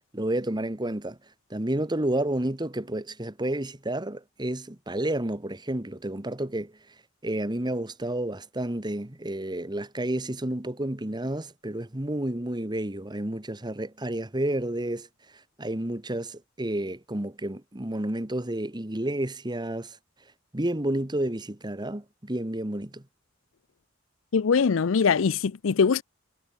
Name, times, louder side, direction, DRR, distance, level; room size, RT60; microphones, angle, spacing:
voice 1, 0.1-1.2 1.5-6.7 7.2-15.1 15.6-20.0 20.5-23.0, right 1 dB, 20° right, 1.5 m, -30 dB
voice 2, 24.3-26.0, left 5 dB, 90° left, 0.5 m, -22 dB
head